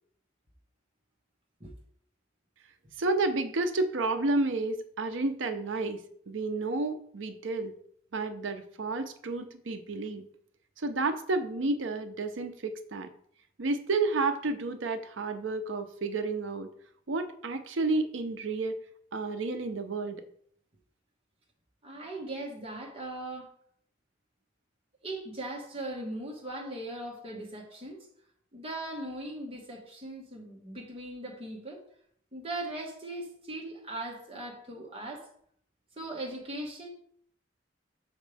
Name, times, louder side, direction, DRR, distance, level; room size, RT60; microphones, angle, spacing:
voice 1, 3.0-7.7 8.1-10.3 10.8-13.1 13.6-16.7 17.1-18.8 19.1-20.2, right 3 dB, 90° right, 8 dB, 0.6 m, -31 dB
voice 2, 21.8-23.5 25.0-28.0 28.5-31.8 32.3-35.3 36.0-36.9, right 1 dB, 30° right, -2 dB, 1.4 m, -39 dB
6.4 x 5.0 x 3.4 m, 0.63 s
head